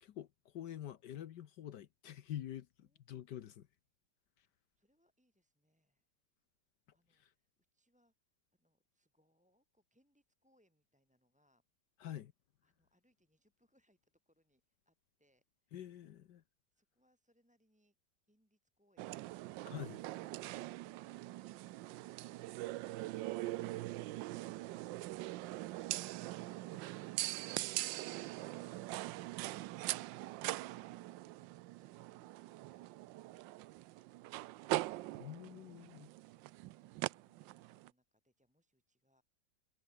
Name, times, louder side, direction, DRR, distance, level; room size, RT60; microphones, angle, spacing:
voice 1, 0.0-3.7 7.1-7.3 12.0-12.3 15.7-16.4 19.7-20.0 35.2-36.1, left 11 dB, 70° left, 1.5 m, -47 dB
voice 2, 4.4-6.1 6.9-11.6 12.6-15.8 16.7-18.0 18.3-29.0 29.3-29.6 30.3-31.0 31.3-35.2 35.5-36.0 36.6-39.2, equal, 5° right, 3.9 m, -79 dB
sound 1, 19.0-37.9, right 17 dB, 90° right, 1.3 m, -42 dB
omnidirectional pair, 1.9 m